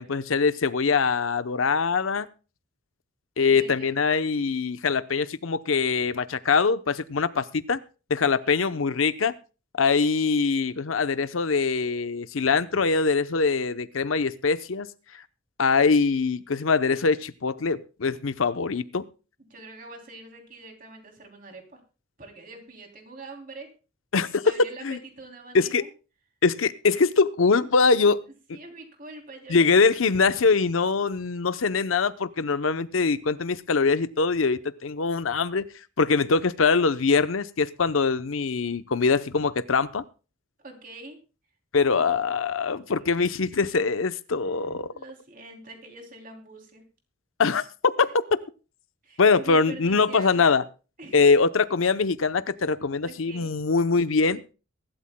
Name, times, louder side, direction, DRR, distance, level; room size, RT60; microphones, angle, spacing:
voice 1, 0.0-2.3 3.4-7.8 8.1-9.3 9.8-14.9 15.6-19.1 24.1-24.4 24.8-25.0 25.5-25.9 26.4-28.2 28.5-28.6 29.5-35.7 36.0-40.0 41.7-44.9 47.4-48.1 49.2-50.6 51.1-54.4, left 4 dB, 85° left, 0.7 m, -23 dB
voice 2, 3.4-4.0 8.4-8.8 19.5-21.8 22.2-23.7 24.4-25.9 28.5-29.7 30.0-30.1 40.6-41.2 41.9-42.4 44.9-46.8 49.0-50.5 51.0-51.2 53.0-53.6, right 2 dB, 45° right, 3.0 m, -44 dB
23.0 x 12.5 x 2.2 m
head